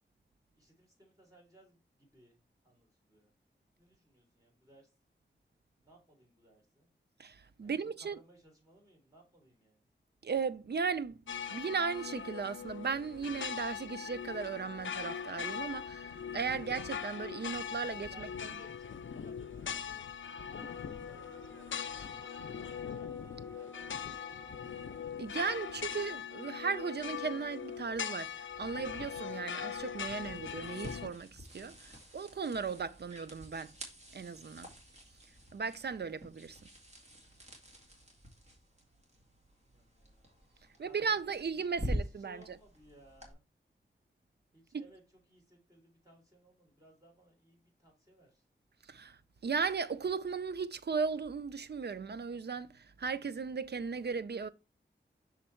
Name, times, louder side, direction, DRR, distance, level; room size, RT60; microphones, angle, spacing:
voice 1, 0.5-3.3 3.8-4.9 5.8-6.9 7.6-9.9 17.9-24.5 37.7-38.2 39.6-41.5 41.8-43.4 44.5-48.5, right 1 dB, 15° right, 3.7 m, -62 dB
voice 2, 7.2-8.2 10.2-11.2 11.5-18.3 25.2-33.7 34.1-34.7 35.5-36.6 40.8-42.4 48.9-54.5, right 5 dB, 55° right, 0.5 m, -36 dB
sound 1, 11.3-31.1, left 7 dB, 80° left, 0.4 m, -41 dB
sound 2, 20.5-25.2, equal, 20° left, 0.5 m, -56 dB
sound 3, 29.8-43.3, equal, 35° right, 2.1 m, -46 dB
6.2 x 3.9 x 4.4 m
wide cardioid pair, 75°, 20 cm